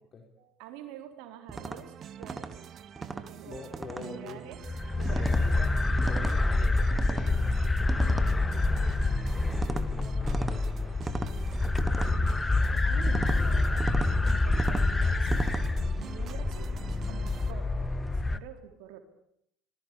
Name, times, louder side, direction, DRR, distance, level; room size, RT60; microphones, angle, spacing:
voice 1, 0.4-2.6 3.1-3.7 3.9-4.6 5.0-5.6 7.9-8.4 12.1-12.4 12.7-15.5 15.9-16.8 17.0-19.0, right 10 dB, 70° right, 7 dB, 3.9 m, -47 dB
sound 1, 1.5-1.8 2.2-2.5 3.0-3.2 3.7-4.0 5.0-5.4 6.0-6.4 6.9-7.3 7.9-8.3 9.5-9.8 10.3-10.6 11.0-11.3 11.8-12.1 13.1-13.4 13.8-14.1 14.5-14.9 15.3-15.6, right 3 dB, 15° right, 3.0 m, -34 dB
sound 2, 1.5-17.5, right 9 dB, 50° right, 1.8 m, -46 dB
voice 2, 3.4-4.5 5.1-8.1 9.3-11.5 11.9-12.2, left 4 dB, 35° left, 4 dB, 4.4 m, -46 dB
sound 3, 4.6-18.4, left 2 dB, 15° left, 1.6 m, -27 dB
25.5 x 20.5 x 8.4 m, 0.74 s
hypercardioid pair, 65°, 0 cm